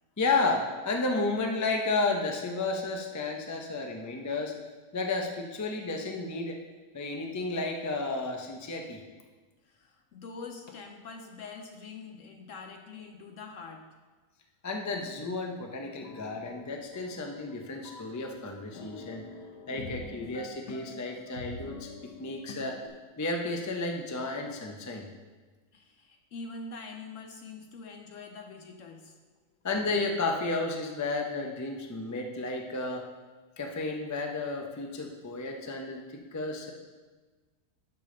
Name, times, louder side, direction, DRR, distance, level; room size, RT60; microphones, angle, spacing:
voice 1, 0.2-4.5 4.9-6.6 6.9-9.0 14.6-19.2 19.7-21.9 22.2-22.8 23.2-25.1 29.6-33.0 33.6-36.7, left 3 dB, 25° left, 2 dB, 0.3 m, -32 dB
voice 2, 9.6-13.9 25.7-29.2, left 4 dB, 65° left, 5 dB, 0.8 m, -44 dB
sound 1, 16.0-22.9, left 4 dB, 80° left, 1.5 m, -46 dB
11.5 x 5.3 x 3.8 m, 1.3 s
omnidirectional pair, 1.7 m